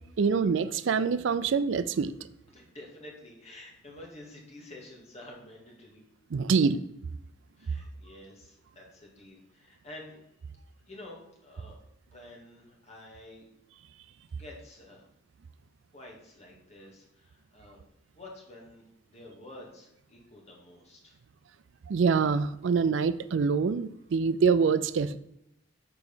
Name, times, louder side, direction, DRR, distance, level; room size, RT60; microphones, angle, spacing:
voice 1, 0.2-2.1 6.3-6.8 21.9-25.2, right 5 dB, 70° right, 13 dB, 0.4 m, -25 dB
voice 2, 2.5-6.0 7.6-10.5 10.9-11.8 12.1-13.5 14.3-15.1 15.9-17.8 18.1-21.2, left 1 dB, 35° left, -2 dB, 2.1 m, -49 dB
7.0 x 4.6 x 5.5 m, 0.80 s
head